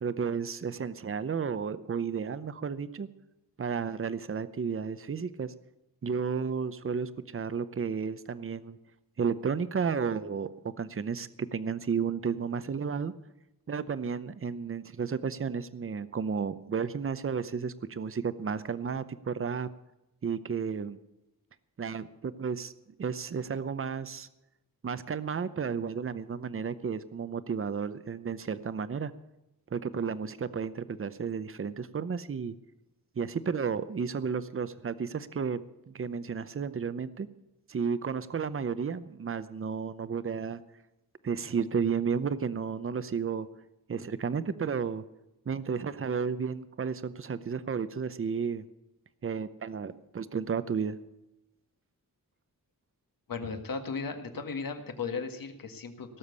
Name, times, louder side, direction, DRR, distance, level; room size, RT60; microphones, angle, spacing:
voice 1, 0.0-3.1 3.6-5.5 6.0-8.8 9.2-13.1 13.7-19.7 20.2-21.0 21.8-22.7 23.0-24.3 24.8-29.1 29.7-32.5 33.2-35.6 35.9-37.3 37.7-40.6 41.2-43.5 43.9-45.0 45.5-48.6 49.2-51.0, right 6 dB, 35° right, 14 dB, 0.7 m, -32 dB
voice 2, 53.3-56.2, left 5 dB, 70° left, 6 dB, 1.8 m, -36 dB
18.0 x 7.2 x 8.2 m, 0.94 s
wide cardioid pair, 150°, 35 cm